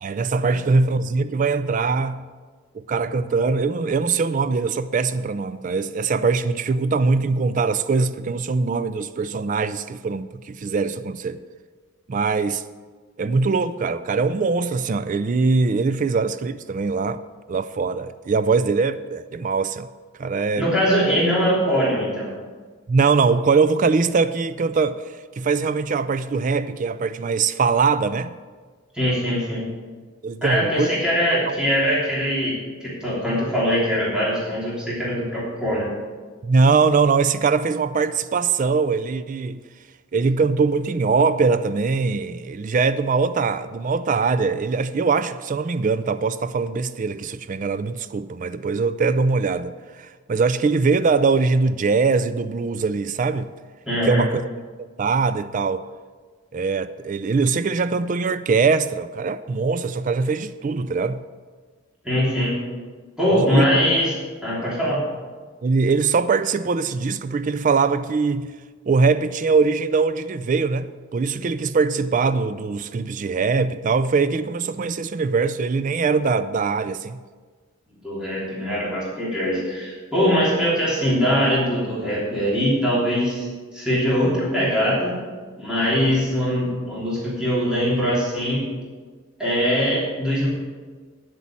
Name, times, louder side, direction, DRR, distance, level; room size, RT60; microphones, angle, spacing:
voice 1, 0.0-2.2 2.7-11.4 12.1-12.6 13.2-17.2 17.5-19.9 20.2-20.7 22.9-28.3 30.2-30.9 36.4-39.6 40.1-53.5 54.0-54.4 55.0-55.8 56.5-61.2 63.5-63.7 65.6-68.5 68.9-77.2, right 4 dB, 40° right, 0.3 m, -22 dB
voice 2, 20.6-22.3 28.9-29.6 30.4-35.9 53.8-54.2 62.0-62.6 63.2-65.0 78.0-83.5 83.7-85.2 85.6-88.6 89.4-90.5, equal, 5° right, 3.2 m, -22 dB
9.8 x 8.1 x 7.4 m
head